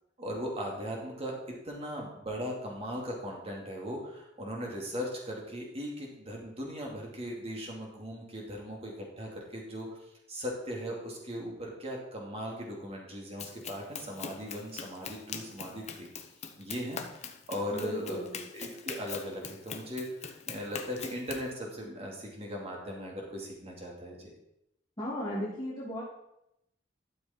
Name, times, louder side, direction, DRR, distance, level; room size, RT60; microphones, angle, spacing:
voice 1, 0.2-1.3 1.6-9.9 10.3-16.1 16.6-18.2 18.5-24.3, equal, 35° right, -1 dB, 2.5 m, -38 dB
Run, 13.4-21.5, left 6 dB, 35° left, 0.8 m, -43 dB
voice 2, 17.7-18.4 25.0-26.0, equal, 20° left, -9 dB, 2.6 m, -36 dB
12.5 x 7.0 x 4.4 m, 0.83 s
head